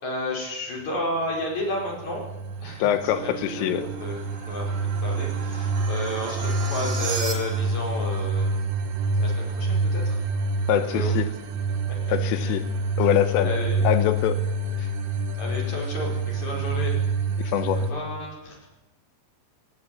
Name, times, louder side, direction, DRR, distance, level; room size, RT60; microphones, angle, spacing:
voice 1, 0.0-2.3 2.6-8.6 9.1-10.2 10.8-11.1 11.9-12.0 12.4-12.6 13.0-13.1 13.4-13.9 15.4-17.0 17.7-18.6, left 1 dB, 35° left, -1 dB, 6.1 m, -32 dB
sound 1, 1.6-17.9, right 2 dB, 80° right, 4.0 m, -27 dB
sound 2, 2.7-7.8, right 5 dB, 35° right, 2.8 m, -36 dB
voice 2, 2.8-3.9 10.7-11.3 12.1-12.7 13.0-13.6 13.9-14.4 14.8-14.9 17.4-17.9, left 11 dB, 85° left, 11 dB, 3.6 m, -24 dB
19.0 x 18.0 x 9.8 m, 0.97 s
omnidirectional pair, 5.8 m